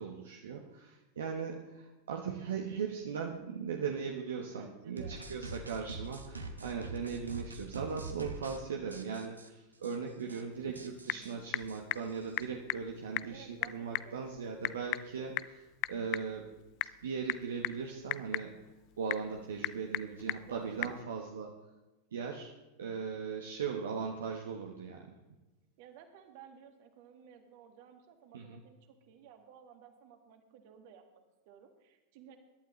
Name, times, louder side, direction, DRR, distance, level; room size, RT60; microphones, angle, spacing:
voice 1, 0.0-16.5 16.8-18.6 19.0-21.5 22.1-25.0 28.3-28.6, right 6 dB, 65° right, 2 dB, 1.2 m, -39 dB
voice 2, 4.4-5.2 11.1-11.4 13.3-14.6 20.5-21.1 25.8-32.4, right 8 dB, 50° right, 6 dB, 1.9 m, -56 dB
sound 1, 5.0-8.6 8.9-9.5 9.8-9.9 10.2-10.4 10.7-12.4, right 3 dB, 80° right, 1.4 m, -44 dB
Typing / Telephone, 10.5-21.0, left 18 dB, 40° left, 0.4 m, -40 dB
22.0 x 11.5 x 3.2 m, 1.1 s
figure-of-eight pair, 90°, 0 cm